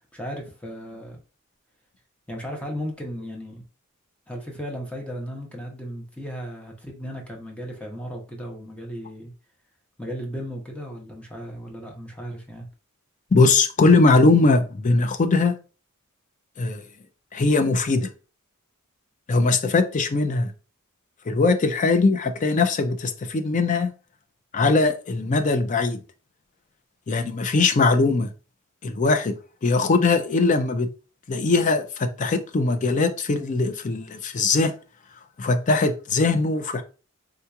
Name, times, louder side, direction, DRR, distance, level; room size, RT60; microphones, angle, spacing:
voice 1, 0.1-1.2 2.3-3.6 4.3-9.3 10.0-12.7, equal, 5° left, 0.7 m, -35 dB
voice 2, 13.3-15.6 16.6-16.8 17.3-18.1 19.3-20.5 21.3-23.9 24.5-26.0 27.1-28.3 28.8-29.4 29.6-30.9 31.3-34.7 35.4-36.8, left 3 dB, 35° left, 0.4 m, -20 dB
3.6 x 2.8 x 2.3 m
head